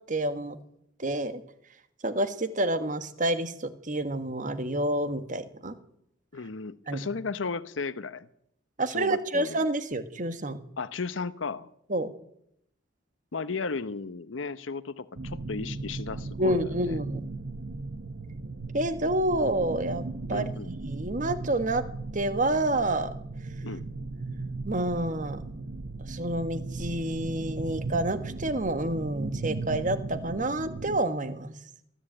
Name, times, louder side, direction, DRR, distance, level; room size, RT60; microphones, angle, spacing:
voice 1, 0.1-0.6 1.0-1.4 2.0-5.7 6.9-7.1 8.8-10.6 11.9-12.1 16.4-17.2 18.7-21.8 22.1-23.1 24.7-25.4 26.1-31.5, right 1 dB, 40° right, 11 dB, 1.6 m, -28 dB
voice 2, 6.3-8.3 8.9-9.7 10.8-11.7 13.3-17.0 20.3-20.7 23.6-23.8, left 4 dB, 85° left, 14 dB, 0.9 m, -35 dB
sound 1, 15.2-31.0, right 3 dB, 60° right, 1.0 m, -37 dB
23.0 x 13.5 x 8.9 m, 0.75 s
head